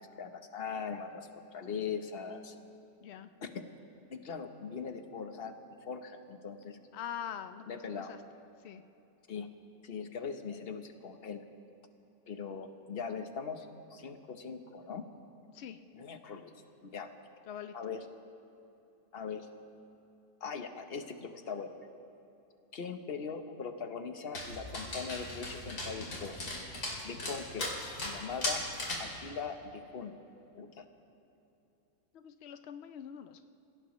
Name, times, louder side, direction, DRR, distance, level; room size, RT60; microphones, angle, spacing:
voice 1, 0.0-2.5 3.4-3.7 4.1-5.5 5.8-6.8 7.7-8.1 9.3-9.5 9.8-11.4 12.3-15.0 15.9-16.5 16.8-17.1 17.7-18.0 19.1-19.5 20.4-21.7 22.7-26.6 27.0-28.6 29.0-30.1 30.5-30.8, left 6 dB, 45° left, 7 dB, 1.0 m, -40 dB
voice 2, 3.0-3.3 6.9-7.7 8.0-8.2 8.6-8.8 15.5-15.8 17.5-17.7 32.1-33.5, left 9 dB, 80° left, 9 dB, 0.5 m, -43 dB
Dog, 24.3-29.1, left 1 dB, 65° left, 3.4 m, -38 dB
28.5 x 16.5 x 3.1 m, 2.9 s
omnidirectional pair, 1.7 m